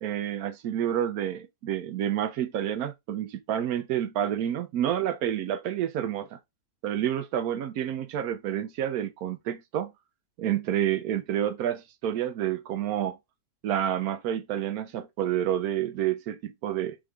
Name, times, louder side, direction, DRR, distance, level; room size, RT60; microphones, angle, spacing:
voice 1, 0.0-6.4 6.8-9.9 10.4-13.2 13.6-17.0, right 10 dB, 70° right, 0.9 m, -29 dB
3.8 x 3.6 x 3.2 m
omnidirectional pair, 1.9 m